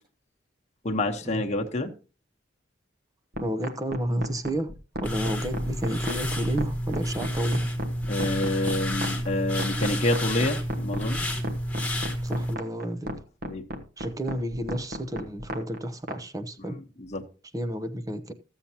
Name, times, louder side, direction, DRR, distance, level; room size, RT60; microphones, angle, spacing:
voice 1, 0.8-1.9 8.1-11.2 13.4-13.6 16.7-17.2, left 1 dB, 40° left, 1.1 m, -28 dB
sound 1, 3.3-16.2, equal, 55° right, 1.3 m, -34 dB
voice 2, 3.4-4.7 5.0-7.6 12.2-13.1 14.0-16.8 17.5-18.3, right 1 dB, 20° right, 0.7 m, -31 dB
sound 2, 5.0-12.5, equal, 10° left, 1.3 m, -30 dB
14.5 x 7.3 x 2.9 m
head